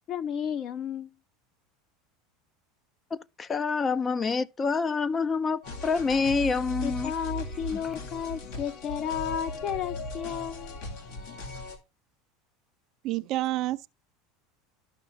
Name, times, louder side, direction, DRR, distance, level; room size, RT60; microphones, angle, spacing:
voice 1, 0.1-1.1 6.8-10.8, left 8 dB, 45° left, 0.8 m, -33 dB
voice 2, 3.4-7.1 7.7-7.8, left 4 dB, 25° left, 0.4 m, -27 dB
sound 1, 5.6-11.8, left 2 dB, 75° left, 2.3 m, -38 dB
voice 3, 13.0-13.9, right 16 dB, 55° right, 0.4 m, -28 dB
12.5 x 5.6 x 2.6 m
supercardioid pair, 110°, 0 cm